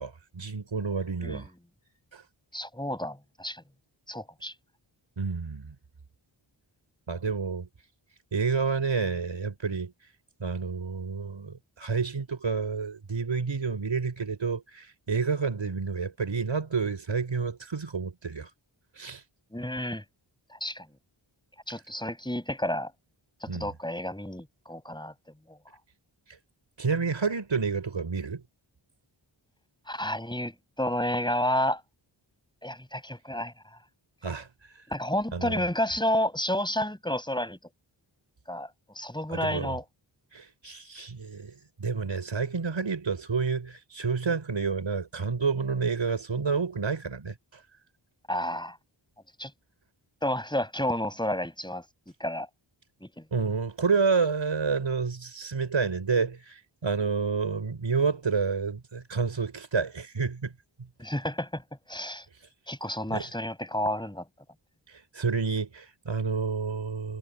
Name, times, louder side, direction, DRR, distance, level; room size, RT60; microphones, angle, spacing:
voice 1, 0.0-1.5 2.1-2.2 5.2-5.7 7.1-7.7 8.3-9.9 10.4-18.5 19.0-19.2 23.5-23.7 26.8-28.4 34.2-34.5 35.3-35.6 39.3-39.8 40.3-41.5 41.8-47.3 53.3-60.5 63.1-63.3 65.1-67.2, right 5 dB, 70° right, 5.7 m, -29 dB
voice 2, 2.5-3.6 4.1-4.5 19.5-20.0 20.6-20.9 21.7-22.9 23.4-25.1 25.5-25.6 29.9-31.8 32.6-33.5 34.9-37.6 38.5-38.7 39.0-39.8 48.3-48.8 49.4-49.5 50.2-51.8 52.2-52.5 53.0-53.2 61.0-61.6 61.9-62.2 62.7-64.2, left 1 dB, 10° left, 7.5 m, -30 dB
wide cardioid pair, 90°, 47 cm